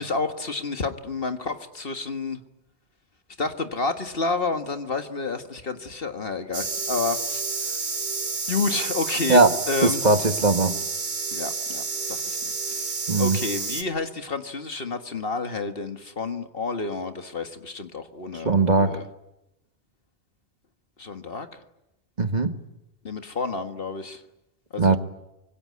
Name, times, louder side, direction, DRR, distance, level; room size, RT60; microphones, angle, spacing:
voice 1, 0.0-2.4 3.4-7.8 8.5-10.1 11.3-12.5 13.2-19.1 21.0-21.6 23.0-24.2 24.7-25.0, left 3 dB, 55° left, 8 dB, 1.8 m, -30 dB
sound 1, 6.5-13.8, right 4 dB, 60° right, 2.3 m, -30 dB
voice 2, 9.8-10.7 13.1-13.4 18.4-19.0 22.2-22.5 24.8-25.0, right 3 dB, 40° right, 8 dB, 1.6 m, -19 dB
25.5 x 23.5 x 9.6 m, 0.91 s
omnidirectional pair, 1.1 m